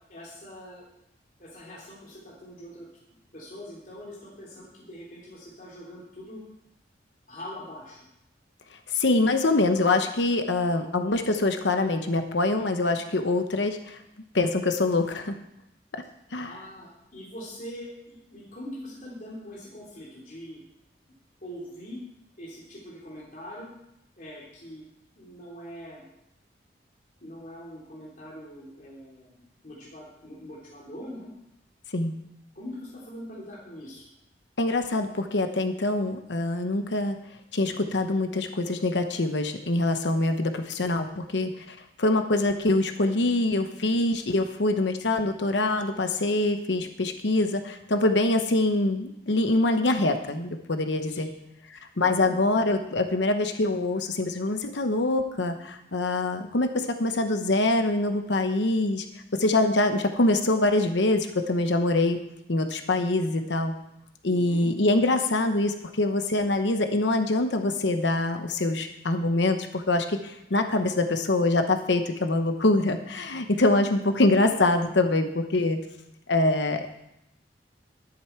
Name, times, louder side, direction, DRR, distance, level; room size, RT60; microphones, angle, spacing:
voice 1, 0.1-0.8 1.4-2.9 3.3-6.4 7.3-8.0 16.4-20.6 21.4-22.0 22.4-23.7 24.2-24.8 25.1-26.0 27.2-31.3 32.5-34.0 51.1-51.2 51.9-52.3 64.3-64.7, equal, 45° left, -5 dB, 3.1 m, -42 dB
voice 2, 8.9-14.0 14.3-15.3 15.9-16.0 16.3-16.5 31.9-32.1 34.6-37.2 37.5-51.3 52.0-59.1 59.4-62.2 62.5-63.7 64.2-75.8 76.3-76.9, left 2 dB, 80° left, 7 dB, 1.0 m, -24 dB
12.5 x 10.5 x 4.5 m, 0.84 s
head